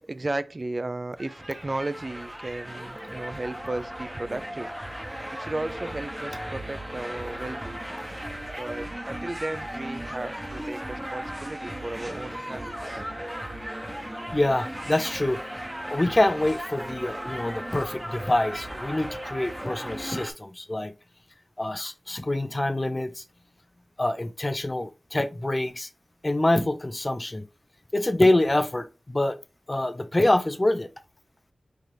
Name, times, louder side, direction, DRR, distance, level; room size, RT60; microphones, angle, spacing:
voice 1, 0.0-4.7 5.3-7.8 8.6-13.0, right 2 dB, 45° right, 0.3 m, -34 dB
sound 1, 1.2-20.3, equal, 10° right, 0.8 m, -36 dB
voice 2, 14.3-15.4 15.9-20.9 21.6-23.2 24.0-25.9 26.2-27.4 27.9-29.4 29.7-30.9, left 1 dB, 30° left, 0.5 m, -25 dB
4.5 x 2.4 x 3.3 m
cardioid pair, 40°, 0 cm